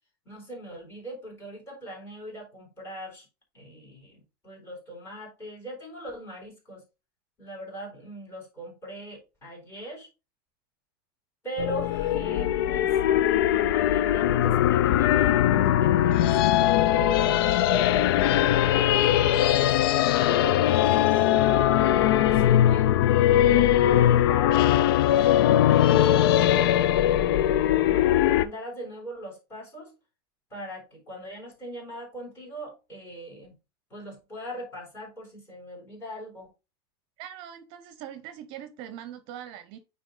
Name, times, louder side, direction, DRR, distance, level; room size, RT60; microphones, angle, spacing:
voice 1, 0.3-3.3 3.5-6.8 7.4-10.1 11.4-12.9 13.5-23.0 23.3-27.3 27.6-29.9 30.5-33.6 33.9-36.5, right 1 dB, 20° left, 3.8 m, -40 dB
sound 1, 11.6-28.5, left 12 dB, 75° left, 0.4 m, -21 dB
voice 2, 37.2-39.8, right 10 dB, 45° right, 0.7 m, -41 dB
8.9 x 3.5 x 3.9 m
supercardioid pair, 165°, 12 cm